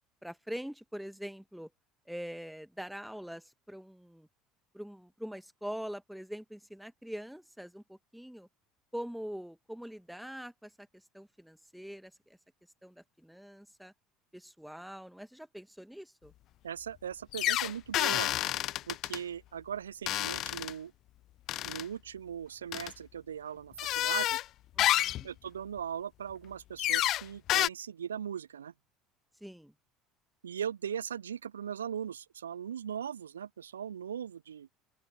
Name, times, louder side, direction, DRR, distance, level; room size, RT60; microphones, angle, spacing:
voice 1, 0.2-1.7 2.1-4.3 4.7-8.5 8.9-10.9 11.1-12.4 12.8-13.9 14.3-16.3 24.8-25.3 29.4-29.7, equal, ahead, 1.6 m, -43 dB
voice 2, 16.6-18.3 18.9-20.9 21.6-24.4 25.2-28.7 30.4-34.7, right 8 dB, 80° right, 0.3 m, -39 dB
sound 1, 17.3-19.2 20.1-20.7 21.5-21.8 22.7-22.9 23.8-24.4 24.8-25.2 26.8-27.2 27.5-27.7, left 14 dB, 50° left, 0.4 m, -29 dB
open air
figure-of-eight pair, 65°, 0 cm